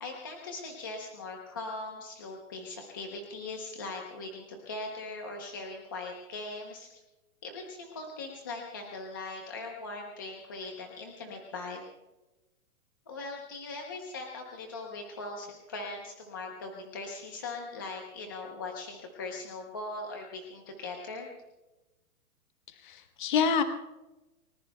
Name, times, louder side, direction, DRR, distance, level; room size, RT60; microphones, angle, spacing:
voice 1, 0.0-6.9 7.4-11.8 13.1-21.3, left 3 dB, 15° left, 1 dB, 0.7 m, -40 dB
voice 2, 22.7-23.6, left 6 dB, 35° left, 8 dB, 1.0 m, -27 dB
30.0 x 18.5 x 2.2 m, 1.0 s
hypercardioid pair, 180°, 44 cm